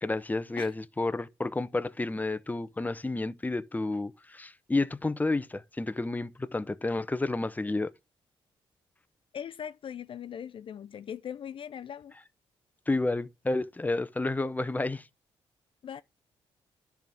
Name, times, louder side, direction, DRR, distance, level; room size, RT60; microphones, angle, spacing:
voice 1, 0.0-7.9 12.9-15.1, left 2 dB, 15° left, 0.7 m, -30 dB
voice 2, 9.3-12.1 15.8-16.0, left 8 dB, 55° left, 0.4 m, -40 dB
10.5 x 3.5 x 6.1 m
supercardioid pair, 60°, 11 cm